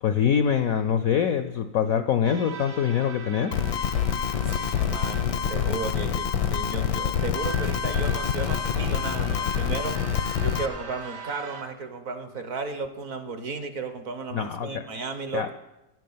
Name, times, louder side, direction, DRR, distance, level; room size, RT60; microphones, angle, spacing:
voice 1, 0.0-3.5 14.3-14.7 15.3-15.5, left 8 dB, 70° left, 9 dB, 0.8 m, -24 dB
sound 1, 2.2-11.6, right 5 dB, 85° right, 2.3 m, -41 dB
sound 2, 3.5-10.7, left 8 dB, 90° left, 1.6 m, -26 dB
voice 2, 4.4-10.0 10.4-15.5, right 4 dB, 50° right, 8 dB, 1.2 m, -34 dB
10.0 x 9.4 x 8.6 m, 0.97 s
omnidirectional pair, 2.0 m